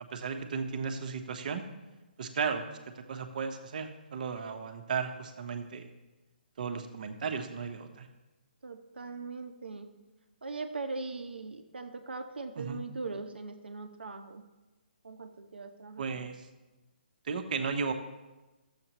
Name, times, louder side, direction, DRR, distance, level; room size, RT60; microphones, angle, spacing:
voice 1, 0.1-1.6 2.2-2.6 3.0-5.9 6.6-8.1 12.6-12.8 16.0-16.5 17.2-17.9, right 5 dB, 55° right, 6 dB, 1.1 m, -35 dB
voice 2, 8.6-9.9 10.4-14.4 15.0-16.3, right 3 dB, 80° right, 7 dB, 1.0 m, -40 dB
12.5 x 7.7 x 3.0 m, 1.1 s
hypercardioid pair, 150°, 5 cm